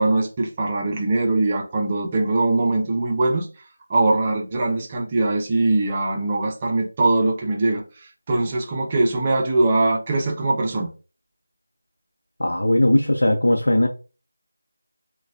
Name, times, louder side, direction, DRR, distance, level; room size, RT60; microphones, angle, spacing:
voice 1, 0.0-3.5 3.9-7.8 8.3-10.9, right 2 dB, 20° right, 0.6 m, -21 dB
voice 2, 12.4-13.9, left 1 dB, 75° left, 0.7 m, -18 dB
6.3 x 2.3 x 2.5 m
figure-of-eight pair, 170°, 0 cm